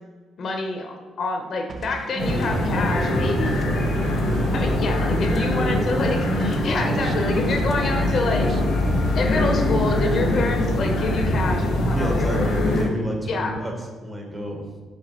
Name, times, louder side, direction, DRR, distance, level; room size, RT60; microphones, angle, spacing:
voice 1, 0.4-3.6 4.5-8.5 9.1-12.4 13.3-13.6, left 2 dB, 55° left, 3 dB, 0.6 m, -27 dB
sound 1, 1.7-6.1 6.4-8.7, right 4 dB, 45° right, 0.3 m, -35 dB
sound 2, 2.2-12.8, left 1 dB, 90° left, 0.9 m, -23 dB
voice 2, 4.4-4.9 6.6-7.1 11.9-13.7 14.0-14.7, right 1 dB, 20° right, 1 dB, 0.8 m, -30 dB
4.8 x 3.5 x 2.8 m, 1.4 s
cardioid pair, 90°, 0 cm